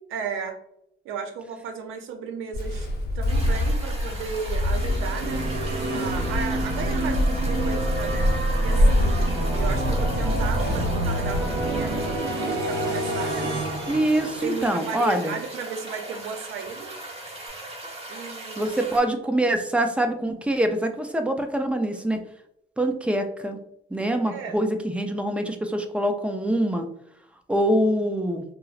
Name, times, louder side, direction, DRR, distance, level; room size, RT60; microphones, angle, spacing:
voice 1, 0.1-0.6 1.0-2.9 3.1-5.4 5.9-12.1 12.4-13.5 14.2-16.9 18.1-18.7 24.3-24.6, right 6 dB, 90° right, 5 dB, 0.6 m, -34 dB
Walk footsteps, 2.5-12.2, left 1 dB, 55° left, 0.8 m, -27 dB
sound 1, 3.3-19.0, right 1 dB, 30° right, 1.1 m, -39 dB
sound 2, 4.7-14.9, right 1 dB, 60° right, 0.9 m, -27 dB
voice 2, 13.9-15.4 18.6-22.2 22.8-23.6 23.9-26.9 27.5-28.4, right 1 dB, 5° right, 6 dB, 0.4 m, -24 dB
3.7 x 2.0 x 2.4 m, 0.75 s
cardioid pair, 90°, 20 cm